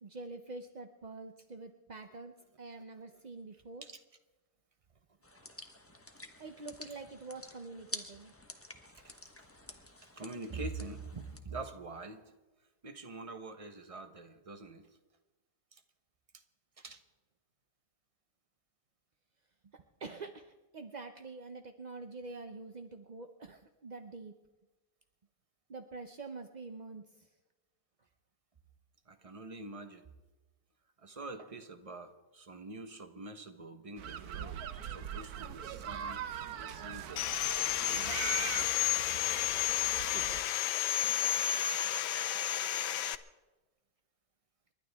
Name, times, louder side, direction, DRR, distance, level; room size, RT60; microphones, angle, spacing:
voice 1, 0.0-3.8 6.4-8.3 19.7-24.3 25.7-27.3 41.0-41.6, right 3 dB, 45° right, 6 dB, 0.5 m, -46 dB
sound 1, 5.2-11.4, left 1 dB, 10° left, 0.8 m, -49 dB
voice 2, 10.0-12.3 12.8-14.9 15.7-15.8 16.8-17.0 29.1-30.0 31.0-36.2 36.5-38.4, right 3 dB, 25° right, 8 dB, 1.0 m, -45 dB
sound 2, 34.0-40.4, right 8 dB, 70° right, 1.2 m, -41 dB
Sawing, 37.2-43.2, left 11 dB, 80° left, 1.3 m, -31 dB
29.5 x 12.0 x 3.5 m, 1.2 s
omnidirectional pair, 1.8 m